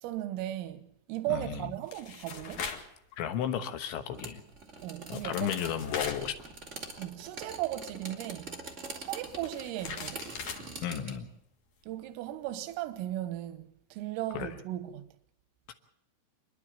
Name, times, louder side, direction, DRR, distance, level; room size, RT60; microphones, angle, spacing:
voice 1, 0.0-2.6 4.8-5.5 7.0-8.6 9.0-10.3 11.9-15.1, right 14 dB, 85° right, 3.8 m, -36 dB
voice 2, 1.3-1.7 3.2-4.4 5.1-6.3 10.8-11.3 14.3-14.5, left 9 dB, 75° left, 3.3 m, -33 dB
sound 1, 1.4-2.9 3.3-3.5 4.8-4.9 5.1-7.0 7.2-7.3 8.9-10.7, left 5 dB, 55° left, 2.4 m, -41 dB
sound 2, 4.1-11.2, right 3 dB, 65° right, 0.7 m, -44 dB
28.0 x 11.0 x 8.7 m
omnidirectional pair, 5.8 m